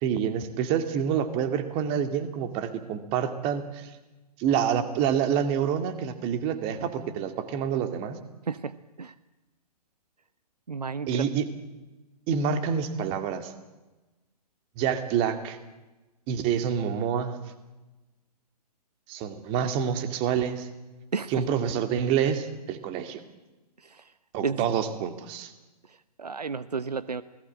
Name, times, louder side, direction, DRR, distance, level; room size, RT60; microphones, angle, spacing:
voice 1, 0.0-3.9 4.4-8.2 11.1-11.5 12.3-13.5 14.8-15.6 16.3-17.4 19.1-20.7 21.3-23.2 24.3-25.5, right 8 dB, 25° right, 9 dB, 2.3 m, -27 dB
voice 2, 8.5-9.1 10.7-11.2 21.1-21.3 23.8-24.1 24.4-24.6 25.9-27.2, right 5 dB, 70° right, 15 dB, 0.9 m, -32 dB
28.0 x 19.0 x 8.7 m, 1.1 s
figure-of-eight pair, 120°, 21 cm